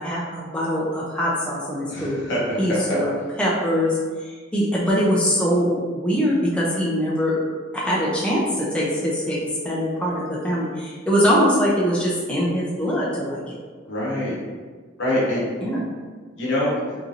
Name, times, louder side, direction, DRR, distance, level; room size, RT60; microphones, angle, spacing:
voice 1, 0.0-2.2 2.6-3.1 3.4-7.4 7.7-9.4 9.6-13.5 15.6-15.8, equal, 5° left, -6 dB, 0.4 m, -22 dB
voice 2, 1.9-2.6 2.9-3.0 13.9-14.4 15.0-15.4 16.4-17.0, left 1 dB, 70° left, -6 dB, 1.0 m, -24 dB
2.9 x 2.5 x 2.4 m, 1.5 s
head